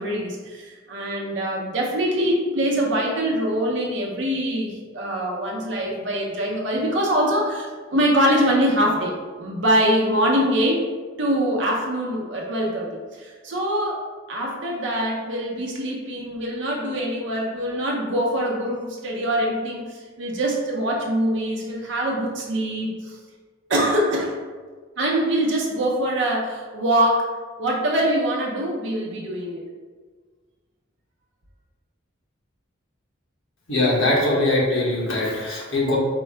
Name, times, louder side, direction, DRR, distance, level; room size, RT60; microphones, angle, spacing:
voice 1, 0.0-9.1 9.4-10.8 11.2-12.9 13.1-23.2 23.7-24.4 25.0-27.3 27.6-29.7, equal, 60° right, -2 dB, 0.7 m, -23 dB
voice 2, 33.7-36.0, left 2 dB, 80° left, -4 dB, 1.2 m, -21 dB
4.5 x 2.1 x 4.5 m, 1.5 s
head